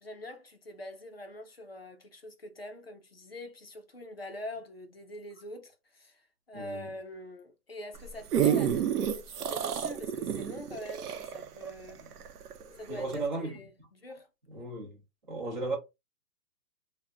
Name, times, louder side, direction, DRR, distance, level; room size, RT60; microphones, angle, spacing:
voice 1, 0.0-12.1 12.8-14.3, left 1 dB, 40° left, 0.4 m, -44 dB
voice 2, 6.5-6.9 12.6-13.5 14.5-15.0 15.3-15.8, right 3 dB, 30° right, 0.8 m, -35 dB
sound 1, 7.9-12.6 13.1-13.2, right 9 dB, 70° right, 0.7 m, -29 dB
2.3 x 2.1 x 3.5 m
hypercardioid pair, 175°, 47 cm